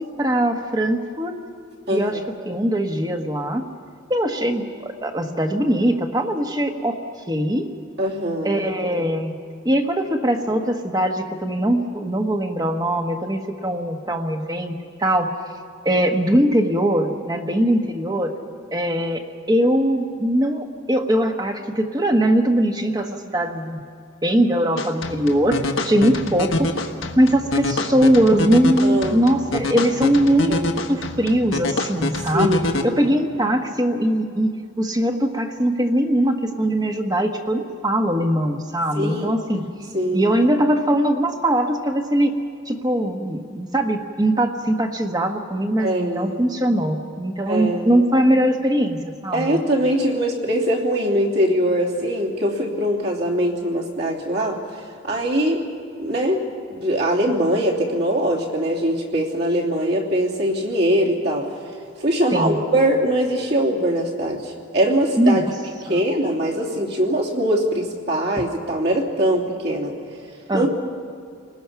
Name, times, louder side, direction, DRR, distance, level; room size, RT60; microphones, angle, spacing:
voice 1, 0.0-1.3 1.9-2.2 2.4-3.7 4.1-7.0 7.3-7.7 8.4-9.4 9.6-15.3 15.8-18.3 18.7-19.2 19.5-23.8 24.2-26.7 27.2-30.6 30.9-34.5 34.8-39.7 40.1-42.3 42.7-49.6 62.3-62.6 65.2-65.5 65.9-66.0 70.5-70.7, right 1 dB, 20° right, 5 dB, 1.2 m, -21 dB
voice 2, 1.9-2.2 8.0-8.6 28.8-29.2 30.5-30.9 32.3-33.0 38.9-39.3 39.9-40.4 45.8-46.3 47.5-48.0 49.3-54.6 55.0-55.6 56.0-56.4 56.7-61.5 62.0-65.4 65.8-69.9 70.5-70.7, equal, 55° right, -2 dB, 3.1 m, -22 dB
sound 1, 24.8-32.8, left 2 dB, 75° left, 1.4 m, -26 dB
29.5 x 20.0 x 5.8 m, 2.3 s
head